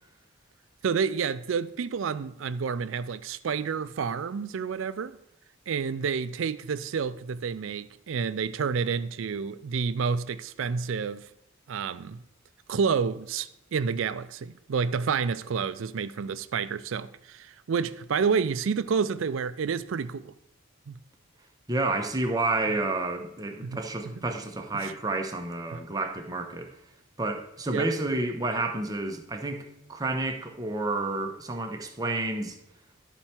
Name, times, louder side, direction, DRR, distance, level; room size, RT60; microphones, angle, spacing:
voice 1, 0.8-5.2 5.7-11.3 11.7-12.2 12.7-20.3 20.9-21.0 23.6-23.8 24.7-24.9 25.7-25.8 27.7-27.9, right 6 dB, 75° right, 0.4 m, -29 dB
voice 2, 21.7-26.7 27.2-32.6, right 2 dB, 20° right, 0.8 m, -30 dB
11.5 x 4.5 x 4.3 m
head